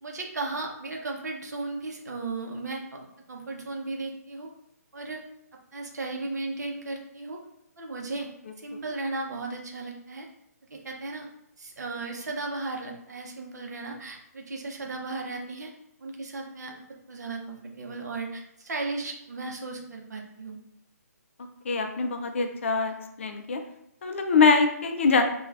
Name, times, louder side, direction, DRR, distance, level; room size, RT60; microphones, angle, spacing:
voice 1, 0.0-4.5 4.9-5.2 5.7-7.4 7.8-8.3 8.6-10.3 10.7-11.3 11.6-15.7 16.0-16.8 17.1-20.6, right 3 dB, 75° right, 1 dB, 0.7 m, -35 dB
voice 2, 21.7-23.6 24.0-25.2, left 4 dB, 45° left, 5 dB, 0.4 m, -23 dB
2.3 x 2.3 x 3.2 m, 0.79 s
hypercardioid pair, 165°, 9 cm